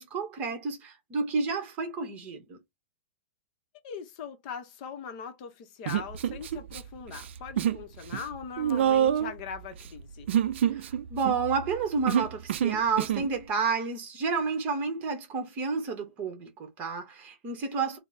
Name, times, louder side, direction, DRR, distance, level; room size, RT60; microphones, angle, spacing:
voice 1, 0.0-2.6 10.7-18.0, right 5 dB, 25° right, 0.9 m, -30 dB
voice 2, 3.8-10.3, left 6 dB, 35° left, 0.7 m, -41 dB
Human voice, 5.9-6.8 7.1-7.8 8.1-13.3, right 10 dB, 65° right, 0.4 m, -27 dB
3.1 x 2.0 x 3.9 m
supercardioid pair, 165°, 7 cm